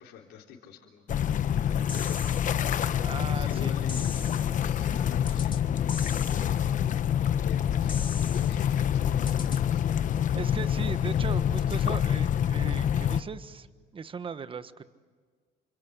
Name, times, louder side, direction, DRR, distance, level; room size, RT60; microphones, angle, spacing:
voice 1, 0.0-2.4 3.2-6.8 7.2-10.0, left 8 dB, 80° left, -2 dB, 3.7 m, -46 dB
sound 1, 1.1-13.2, left 9 dB, 50° left, 1.1 m, -26 dB
sound 2, 1.9-2.5 3.9-4.5 5.3-5.6 5.9-6.5 7.9-8.5 9.3-9.6, left 4 dB, 30° left, 2.2 m, -40 dB
voice 2, 3.0-3.7 10.3-13.7 13.9-14.8, right 5 dB, 30° right, 12 dB, 1.4 m, -38 dB
29.5 x 26.0 x 7.9 m, 1.6 s
cardioid pair, 110°, 17 cm